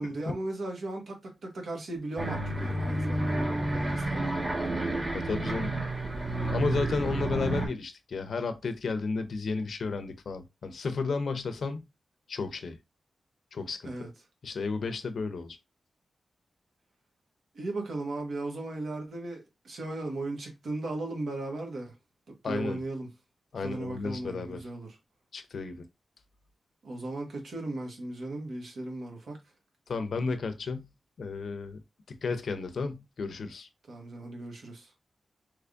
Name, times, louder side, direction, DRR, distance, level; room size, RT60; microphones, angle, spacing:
voice 1, 0.0-3.5 3.7-4.2 13.8-14.1 17.5-21.9 22.3-23.1 23.6-24.9 26.8-29.4 33.9-34.9, right 2 dB, 80° right, 1.2 m, -36 dB
sound 1, 2.2-7.7, right 1 dB, 35° right, 1.7 m, -30 dB
voice 2, 5.1-5.7 6.5-11.8 12.3-12.8 13.5-14.1 14.4-15.6 22.4-22.8 23.5-24.7 25.3-25.8 29.9-30.9 31.2-31.8 32.1-33.7, left 4 dB, 75° left, 0.5 m, -33 dB
3.4 x 3.1 x 2.5 m
wide cardioid pair, 85°, 0 cm